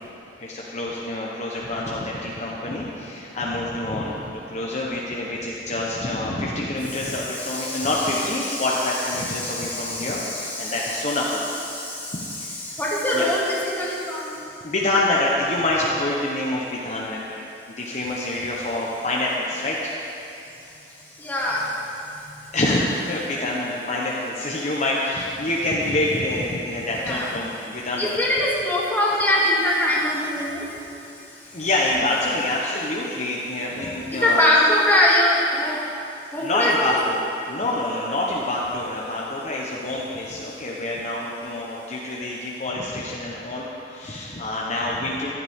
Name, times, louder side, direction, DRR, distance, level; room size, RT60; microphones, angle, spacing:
voice 1, 0.4-11.5 12.4-12.5 13.1-13.3 14.0-14.1 14.6-17.4 17.8-19.9 22.5-28.2 31.5-34.4 36.4-45.3, left 1 dB, 40° left, -4 dB, 1.1 m, -26 dB
voice 2, 7.0-7.9 8.4-8.6 9.2-11.2 11.7-14.4 21.2-21.7 22.0-22.3 27.0-27.3 28.0-30.6 34.1-35.8 36.3-36.9, left 1 dB, 10° left, -7 dB, 2.5 m, -23 dB
15.5 x 11.5 x 3.7 m, 2.7 s
head